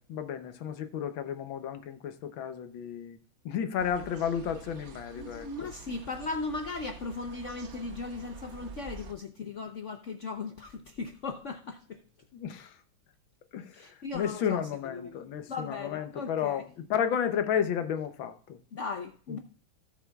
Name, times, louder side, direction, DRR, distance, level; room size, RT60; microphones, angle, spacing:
voice 1, 0.0-3.2 3.4-5.5 12.3-12.7 13.5-13.9 14.1-18.6, left 8 dB, 70° left, 1.5 m, -32 dB
sound 1, 3.8-9.1, right 4 dB, 55° right, 0.8 m, -48 dB
voice 2, 5.2-12.0 13.7-15.2 15.5-16.6 18.7-19.4, left 3 dB, 90° left, 0.6 m, -37 dB
18.0 x 6.7 x 2.3 m
omnidirectional pair, 2.4 m